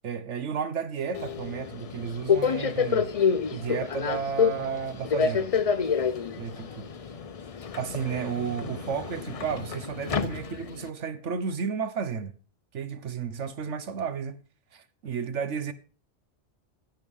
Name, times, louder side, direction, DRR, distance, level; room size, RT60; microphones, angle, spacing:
voice 1, 0.0-3.1 3.5-5.5 6.4-6.9 7.8-12.3 12.7-14.4 14.7-15.7, right 6 dB, 80° right, 1.4 m, -32 dB
Subway metro underground, 1.1-10.9, left 6 dB, 40° left, 0.6 m, -28 dB
16.5 x 6.8 x 5.4 m
omnidirectional pair, 1.2 m